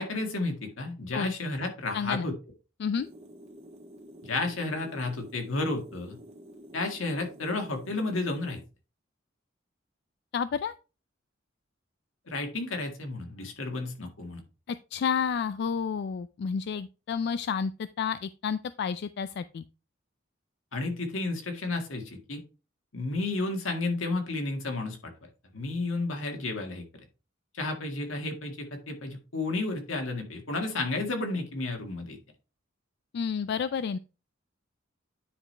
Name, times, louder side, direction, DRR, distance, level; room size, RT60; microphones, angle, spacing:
voice 1, 0.0-2.3 4.2-6.2 6.7-8.6 12.3-14.4 20.7-22.4 22.9-25.1 25.5-26.8 27.5-32.2, left 2 dB, 80° left, 3 dB, 1.8 m, -32 dB
voice 2, 1.9-2.3 2.8-3.1 10.3-10.7 14.7-19.6 33.1-34.0, left 6 dB, 55° left, 13 dB, 0.3 m, -30 dB
sound 1, 3.0-8.6, equal, 30° right, 1.3 m, -49 dB
9.7 x 5.0 x 3.3 m, 0.32 s
head